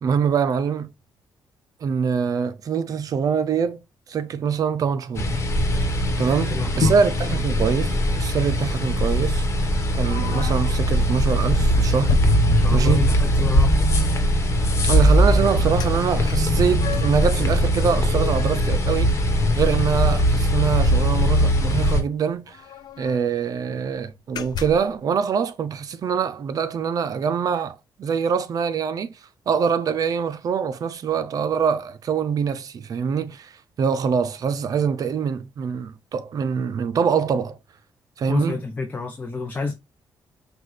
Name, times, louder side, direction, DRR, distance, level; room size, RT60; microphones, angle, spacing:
voice 1, 0.0-0.9 1.8-3.8 4.1-5.3 6.2-9.7 9.9-12.2 12.7-13.1 14.9-19.2 19.6-22.6 23.0-29.2 29.5-33.5 33.8-37.6 38.2-38.6, right 6 dB, 55° right, 0.6 m, -24 dB
sound 1, 5.1-22.0, equal, 40° left, 1.3 m, -20 dB
voice 2, 6.3-6.9 12.4-13.8 14.8-14.9 38.3-39.8, left 4 dB, 20° left, 0.7 m, -29 dB
sound 2, 10.1-10.8 11.3-11.5 12.1-13.2 15.8-15.9 16.3-17.3 17.7-19.6 19.9-20.0 20.3-20.5 21.6-21.7 21.9-22.0 22.5-23.4 23.8-24.0 24.4-25.0, left 7 dB, 65° left, 0.4 m, -32 dB
5.9 x 2.4 x 3.2 m
cardioid pair, 105°, 8 cm